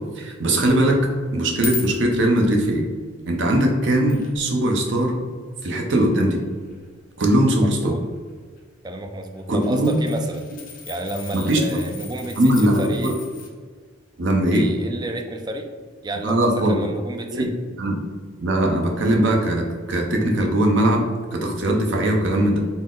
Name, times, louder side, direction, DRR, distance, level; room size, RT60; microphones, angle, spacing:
voice 1, 0.2-1.0 1.3-2.8 3.3-5.2 5.6-6.4 7.2-7.9 9.5-10.0 11.3-11.8 12.4-13.1 14.2-14.7 16.2-16.8 17.3-17.5 17.8-18.0 18.4-21.0 21.3-22.6, right 1 dB, 65° right, 1 dB, 0.7 m, -20 dB
sound 1, 0.6-0.7 1.2-2.6 3.3-3.4 4.1-4.6 4.9-5.0 5.8-6.9 8.0-8.3 8.6-8.7 9.2-13.5 17.4-17.5, left 5 dB, 45° left, 0.6 m, -37 dB
voice 2, 7.6-8.0 8.8-10.5 10.9-12.5 12.8-13.1 14.5-15.7 16.0-17.5, right 1 dB, 20° right, 4 dB, 0.3 m, -30 dB
4.0 x 2.1 x 3.7 m, 1.6 s
head